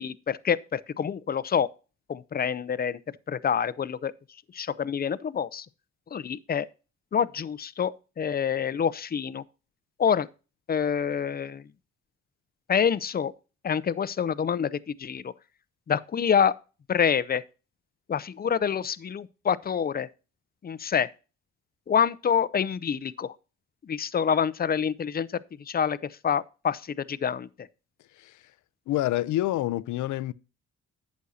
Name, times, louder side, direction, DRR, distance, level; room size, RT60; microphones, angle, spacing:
voice 1, 0.0-1.7 2.1-3.0 3.3-4.1 4.5-5.7 6.1-6.7 7.1-9.4 10.0-10.3 10.7-11.6 12.7-13.3 13.6-15.3 15.9-16.5 16.9-17.4 18.1-20.1 20.6-21.1 21.9-23.3 23.8-25.3 25.7-26.0 26.2-26.8 27.1-27.5, left 7 dB, 30° left, 0.6 m, -26 dB
voice 2, 28.1-28.5 28.9-30.3, left 15 dB, 75° left, 0.6 m, -28 dB
11.5 x 8.2 x 2.8 m
cardioid pair, 90°, 30 cm